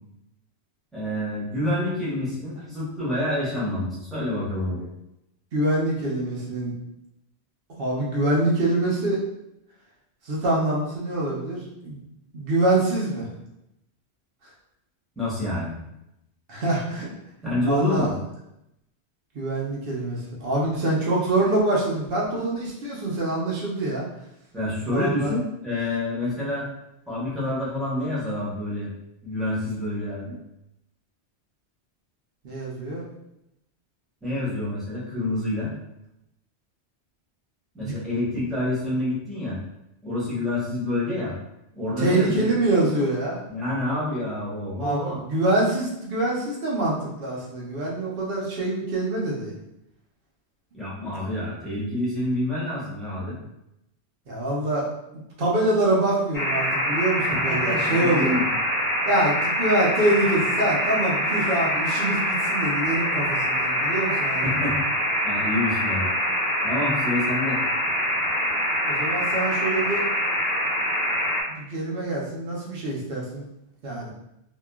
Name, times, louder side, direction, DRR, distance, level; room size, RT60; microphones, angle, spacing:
voice 1, 0.9-4.9 15.2-15.8 17.4-18.1 24.5-26.7 27.1-28.9 29.2-30.3 34.2-35.7 37.7-39.6 40.0-41.3 41.8-42.5 43.5-45.2 50.7-53.4 57.3-58.4 64.4-64.8 65.2-66.1 66.6-67.6, left 1 dB, ahead, -9 dB, 0.9 m, -27 dB
voice 2, 5.5-6.7 7.8-9.2 10.2-12.0 12.3-13.3 16.5-17.1 17.7-18.1 19.3-24.1 24.9-25.3 32.4-33.0 37.8-37.9 42.0-43.4 44.8-49.5 54.3-54.9 55.4-58.3 59.0-64.5 68.9-70.0 71.5-73.4 73.8-74.1, right 2 dB, 60° right, -4 dB, 0.9 m, -25 dB
sound 1, 56.3-71.4, equal, 25° left, 0.5 m, -25 dB
2.8 x 2.3 x 2.3 m, 0.85 s
omnidirectional pair, 1.1 m